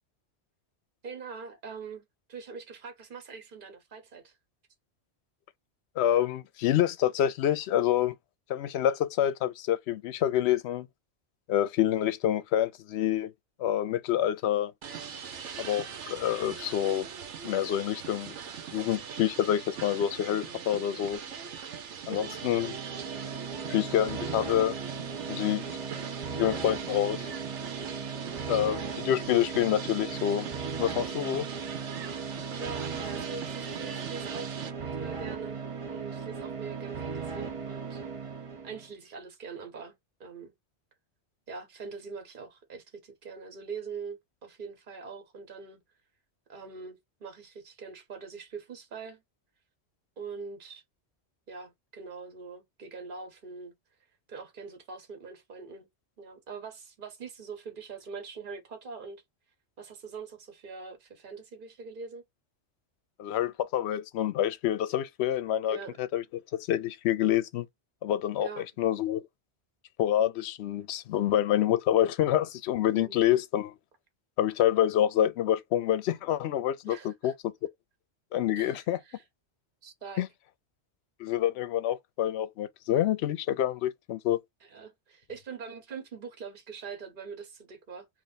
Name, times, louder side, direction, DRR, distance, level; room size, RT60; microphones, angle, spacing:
voice 1, 1.0-4.4 22.1-22.3 31.4-31.5 32.6-34.6 35.0-35.6 35.9-38.0 38.6-40.5 41.5-45.8 46.5-49.2 50.2-50.8 51.5-53.7 54.3-55.9 56.2-59.2 59.8-62.2 65.7-66.0 68.4-68.6 72.9-73.4 76.8-77.3 78.6-79.2 79.8-80.2 84.6-88.1, right 5 dB, 50° right, 1.2 m, -43 dB
voice 2, 6.0-8.1 8.5-10.9 11.5-13.3 13.6-14.7 15.6-17.1 17.4-18.3 18.7-21.2 22.1-22.8 23.7-24.8 25.3-25.6 26.4-27.2 28.5-30.5 30.8-31.5 63.2-66.2 66.5-67.7 68.0-69.3 70.0-73.7 74.4-77.5 78.3-79.0 80.2-80.3 81.2-84.4, left 11 dB, 70° left, 0.8 m, -27 dB
sound 1, 14.8-34.7, right 7 dB, 90° right, 1.1 m, -41 dB
sound 2, 22.0-38.9, right 5 dB, 35° right, 0.6 m, -37 dB
3.3 x 2.6 x 3.9 m
omnidirectional pair, 1.2 m